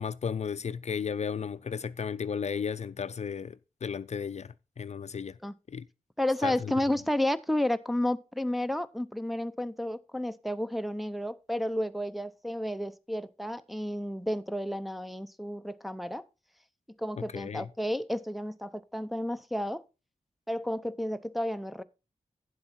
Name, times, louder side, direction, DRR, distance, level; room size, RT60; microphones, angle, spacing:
voice 1, 0.0-5.4 5.7-5.8 6.4-6.7 17.2-17.7, left 6 dB, 60° left, 0.4 m, -34 dB
voice 2, 6.2-16.2 17.0-19.8 20.5-21.8, left 1 dB, ahead, 0.6 m, -31 dB
10.0 x 7.6 x 4.3 m
wide cardioid pair, 65°, 13 cm